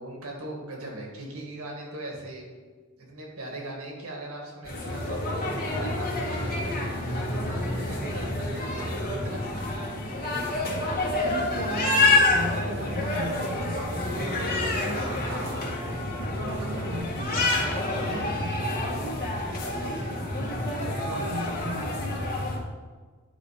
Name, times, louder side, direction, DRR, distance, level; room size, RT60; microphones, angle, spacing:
voice 1, 0.0-2.5 3.0-9.4 15.2-15.7 19.5-20.4, right 1 dB, 80° right, -1 dB, 2.0 m, -40 dB
sound 1, 4.7-22.6, left 2 dB, 40° left, 1.7 m, -28 dB
voice 2, 10.6-15.4 15.9-19.0 20.2-22.1, right 1 dB, 60° right, 0 dB, 0.7 m, -38 dB
9.8 x 3.9 x 5.2 m, 1.5 s
head